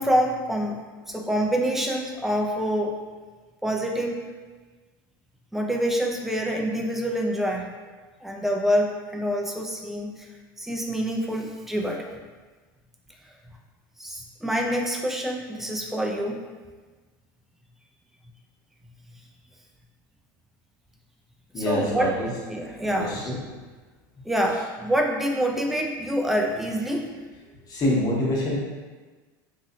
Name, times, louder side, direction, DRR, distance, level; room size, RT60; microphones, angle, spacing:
voice 1, 0.0-3.0 3.6-4.2 5.5-7.7 8.2-10.3 10.6-12.1 14.0-16.4 21.6-22.1 22.5-23.2 24.2-27.1, equal, ahead, 0 dB, 0.4 m, -26 dB
voice 2, 21.5-22.3 22.8-23.4 27.7-28.6, left 1 dB, 35° left, -4 dB, 1.0 m, -26 dB
3.0 x 2.7 x 2.6 m, 1.3 s
supercardioid pair, 105°, 11 cm